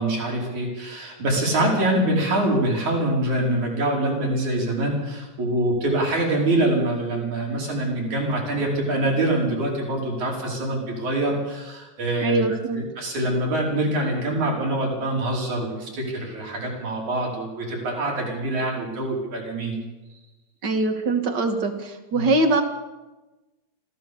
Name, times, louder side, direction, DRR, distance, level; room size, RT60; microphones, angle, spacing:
voice 1, 0.0-12.5 12.7-19.8 22.1-22.3, right 1 dB, 80° right, -2 dB, 6.5 m, -24 dB
voice 2, 12.2-12.8 20.6-22.6, right 2 dB, 40° right, 5 dB, 2.4 m, -22 dB
25.5 x 15.5 x 7.1 m, 1.1 s
omnidirectional pair, 3.3 m